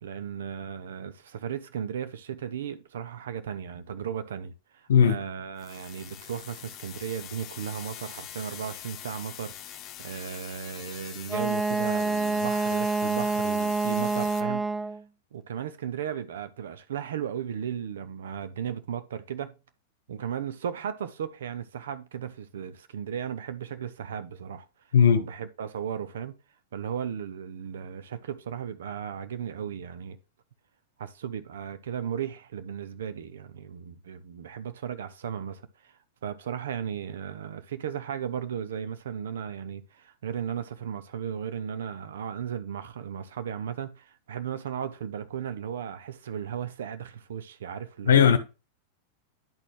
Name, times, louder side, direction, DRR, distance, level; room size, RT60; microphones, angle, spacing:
voice 1, 0.0-14.6 15.3-19.5 20.1-24.7 25.1-26.3 26.7-30.2 31.0-48.4, right 8 dB, 75° right, 0.8 m, -36 dB
sound 1, 5.6-14.4, left 10 dB, 40° left, 0.9 m, -43 dB
Wind instrument woodwind instrument, 11.3-15.0, right 3 dB, 10° right, 0.3 m, -27 dB
voice 2, 24.9-25.3 48.1-48.4, left 7 dB, 75° left, 0.9 m, -17 dB
10.5 x 4.2 x 3.2 m
hypercardioid pair, 100°, 0 cm